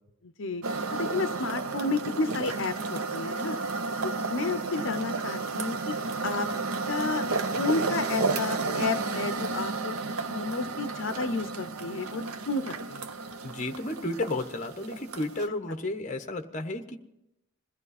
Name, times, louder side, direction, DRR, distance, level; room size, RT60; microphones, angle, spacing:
voice 1, 0.2-0.6 0.9-3.6 4.0-6.0 6.2-6.5 6.9-7.3 7.5-13.1, left 3 dB, 60° left, 10 dB, 0.6 m, -31 dB
sound 1, 0.6-15.5, right 3 dB, 85° right, 0.8 m, -32 dB
voice 2, 13.4-17.0, left 2 dB, 35° left, 7 dB, 1.0 m, -32 dB
21.5 x 15.0 x 4.2 m, 0.85 s
head